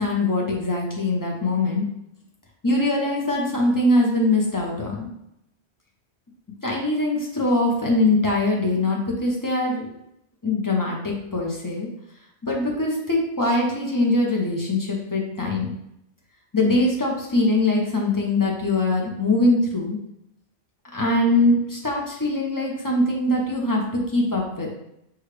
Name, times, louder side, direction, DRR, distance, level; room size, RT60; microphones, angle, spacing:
voice 1, 0.0-1.9 2.6-5.1 6.6-9.9 10.4-11.9 12.4-15.7 16.5-20.0 20.9-24.7, left 2 dB, 20° left, -1 dB, 0.8 m, -22 dB
6.2 x 2.4 x 3.3 m, 0.80 s
omnidirectional pair, 1.1 m